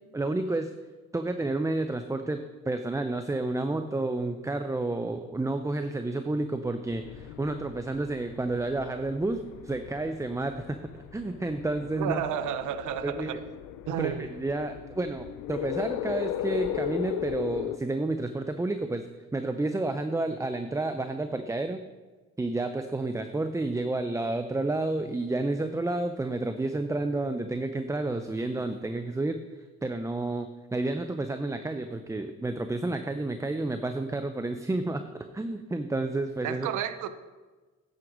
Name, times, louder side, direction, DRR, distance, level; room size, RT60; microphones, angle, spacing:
voice 1, 0.1-0.7 1.1-12.2 13.0-13.4 14.0-19.1 19.3-21.8 22.4-29.4 29.8-36.7, right 2 dB, 10° right, 8 dB, 0.5 m, -30 dB
sound 1, 6.8-17.8, left 12 dB, 90° left, 0.5 m, -37 dB
voice 2, 11.9-13.4 13.9-14.3 36.4-37.1, right 9 dB, 80° right, 11 dB, 0.7 m, -31 dB
9.6 x 7.7 x 5.2 m, 1.3 s
cardioid pair, 90°, 30 cm